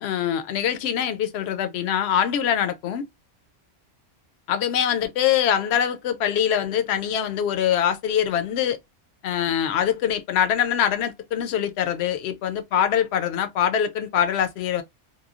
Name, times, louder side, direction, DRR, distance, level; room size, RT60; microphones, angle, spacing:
voice 1, 0.0-3.1 4.5-8.8 9.2-14.8, left 9 dB, 65° left, 0.8 m, -23 dB
3.0 x 2.3 x 2.3 m
omnidirectional pair, 1.3 m